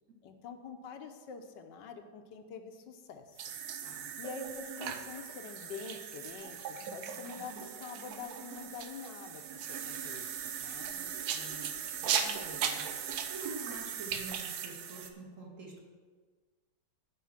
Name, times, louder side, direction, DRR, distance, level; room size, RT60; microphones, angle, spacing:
voice 1, 0.2-3.6 4.2-11.0, left 5 dB, 80° left, 6 dB, 1.4 m, -46 dB
sound 1, 3.4-15.1, right 7 dB, 70° right, 1.1 m, -38 dB
voice 2, 10.9-11.7 12.2-15.9, right 2 dB, 50° right, -2 dB, 1.9 m, -48 dB
8.3 x 4.9 x 7.3 m, 1.4 s
omnidirectional pair, 1.9 m